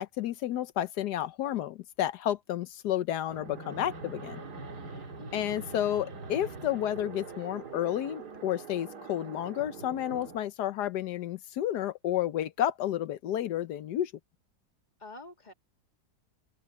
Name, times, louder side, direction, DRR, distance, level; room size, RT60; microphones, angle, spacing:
voice 1, 0.0-4.4 5.3-14.1, left 11 dB, 85° left, 1.3 m, -31 dB
Fixed-wing aircraft airplane, 3.3-10.4, right 4 dB, 85° right, 2.8 m, -43 dB
voice 2, 5.2-5.6 15.0-15.5, left 2 dB, 25° left, 2.4 m, -47 dB
open air
omnidirectional pair, 1.7 m